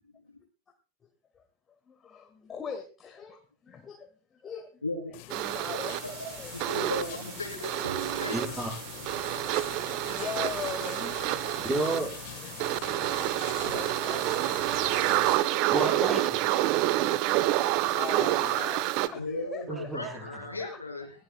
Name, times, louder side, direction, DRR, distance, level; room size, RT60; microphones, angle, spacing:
voice 1, 1.9-4.8 5.3-6.0 6.4-6.6 9.3-9.4 9.7-11.6 12.4-15.7 17.3-19.9 20.3-20.8, left 6 dB, 20° left, 4 dB, 1.7 m, -42 dB
sound 1, 5.1-15.4, left 16 dB, 45° left, 1.3 m, -43 dB
sound 2, 5.3-19.1, right 15 dB, 45° right, 0.8 m, -28 dB
voice 2, 6.5-8.3 19.1-21.1, left 2 dB, 80° left, 2 dB, 3.3 m, -36 dB
sound 3, 7.6-12.6, right 8 dB, 65° right, 1.0 m, -44 dB
voice 3, 8.3-8.7 11.6-12.1 15.7-16.4 19.7-20.5, right 2 dB, 15° right, 0 dB, 5.8 m, -31 dB
20.5 x 15.0 x 2.2 m, 0.34 s
figure-of-eight pair, 90°, 0 cm